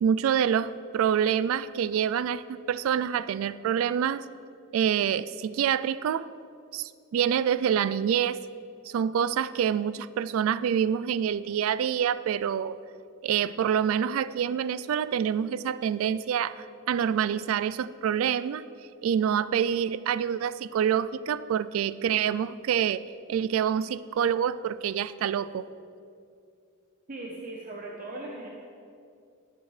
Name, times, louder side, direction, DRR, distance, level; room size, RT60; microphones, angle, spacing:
voice 1, 0.0-4.3 4.7-6.3 6.7-8.4 8.9-12.8 13.2-18.6 19.0-23.0 23.3-25.7, right 8 dB, 85° right, 16 dB, 0.3 m, -26 dB
voice 2, 27.1-28.5, right 2 dB, 40° right, -2 dB, 1.0 m, -38 dB
14.5 x 8.3 x 3.3 m, 2.5 s
head